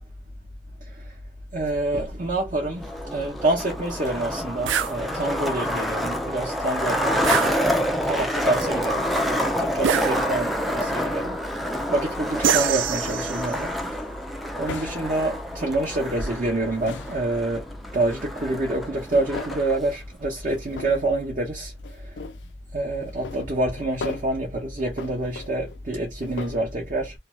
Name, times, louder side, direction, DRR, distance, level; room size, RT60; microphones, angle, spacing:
voice 1, 1.5-11.4 11.9-13.7 14.6-17.6 17.9-21.7 22.0-22.1 22.7-27.1, right 2 dB, 45° right, 0.8 m, -27 dB
Skateboard, 2.8-19.8, equal, ahead, 0.3 m, -28 dB
sound 1, 4.7-5.0 7.2-8.1 9.8-10.6 12.4-13.5, right 9 dB, 90° right, 0.3 m, -25 dB
sound 2, 14.6-16.1 16.5-17.6 18.7-19.8 20.5-21.3 21.8-22.5 23.0-24.4 24.8-26.6, left 4 dB, 75° left, 0.4 m, -38 dB
2.5 x 2.3 x 3.0 m
head